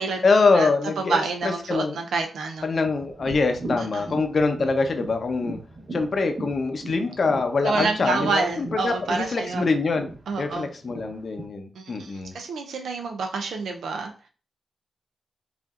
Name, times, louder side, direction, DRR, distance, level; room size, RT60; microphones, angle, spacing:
voice 1, 0.2-1.2 1.7-2.0 2.6-5.6 5.9-10.1 10.4-12.3, left 4 dB, 55° left, 6 dB, 0.7 m, -24 dB
voice 2, 1.0-2.7 3.8-4.1 7.6-9.6 10.3-10.7 11.7-14.1, right 4 dB, 90° right, 4 dB, 0.5 m, -28 dB
sound 1, 2.6-11.5, right 1 dB, 45° right, 1.2 m, -38 dB
4.9 x 2.5 x 2.4 m, 0.37 s
cardioid pair, 80°, 0 cm